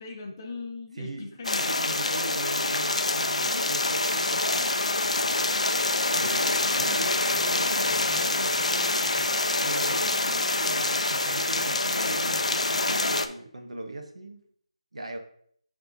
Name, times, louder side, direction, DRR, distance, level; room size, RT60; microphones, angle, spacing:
voice 1, 0.0-1.7 6.2-9.3, left 3 dB, 30° left, 2 dB, 0.8 m, -41 dB
voice 2, 1.0-4.8 6.1-7.7 8.3-8.6 9.6-14.4 14.9-15.2, right 2 dB, 80° right, 4 dB, 1.0 m, -39 dB
sound 1, 1.4-13.3, left 2 dB, 90° left, 0.5 m, -26 dB
10.5 x 3.5 x 2.6 m, 0.63 s
figure-of-eight pair, 160°, 3 cm